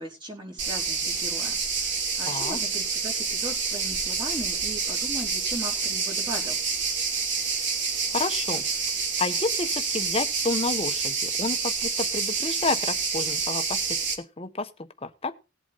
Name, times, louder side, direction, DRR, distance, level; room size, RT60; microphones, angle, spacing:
voice 1, 0.0-1.6 2.2-6.6, right 1 dB, 25° right, 1 dB, 4.5 m, -38 dB
sound 1, 0.6-14.1, right 5 dB, 60° right, 3.2 m, -28 dB
voice 2, 2.3-2.6 8.1-8.7 9.2-14.7 15.0-15.3, left 3 dB, 30° left, 8 dB, 1.3 m, -30 dB
19.0 x 8.1 x 4.2 m, 0.29 s
head